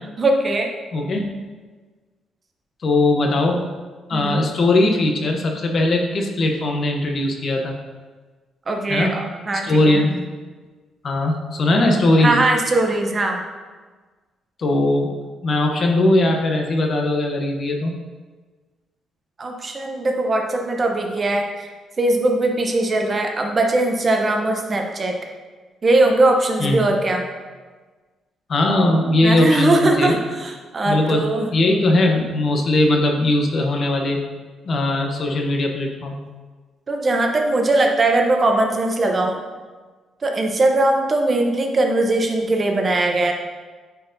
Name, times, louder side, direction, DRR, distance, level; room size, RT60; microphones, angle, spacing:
voice 1, 0.2-0.7 4.1-4.4 8.7-10.1 12.2-13.4 19.4-21.7 22.0-25.2 25.8-27.2 29.2-31.5 36.9-39.4 40.2-43.3, right 2 dB, 30° right, 3 dB, 0.7 m, -20 dB
voice 2, 0.9-1.3 2.8-3.6 4.1-7.7 8.9-9.2 9.6-10.2 11.0-12.3 14.6-15.1 15.4-17.9 26.6-26.9 28.5-30.1 30.8-31.2 31.5-34.2 34.7-36.2, left 2 dB, 45° left, 2 dB, 0.8 m, -19 dB
9.0 x 4.5 x 2.6 m, 1.4 s
cardioid pair, 125°, 0 cm